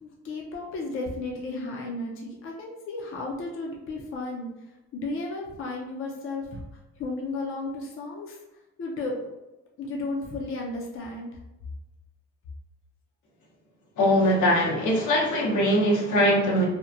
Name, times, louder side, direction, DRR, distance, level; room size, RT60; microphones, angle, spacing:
voice 1, 0.0-4.5 4.9-6.6 7.0-8.4 8.8-9.3 9.8-11.3, left 2 dB, 45° left, -1 dB, 0.5 m, -33 dB
voice 2, 14.0-16.7, equal, 75° left, -2 dB, 0.8 m, -21 dB
2.8 x 2.1 x 2.4 m, 1.0 s
cardioid pair, 90°, 30 cm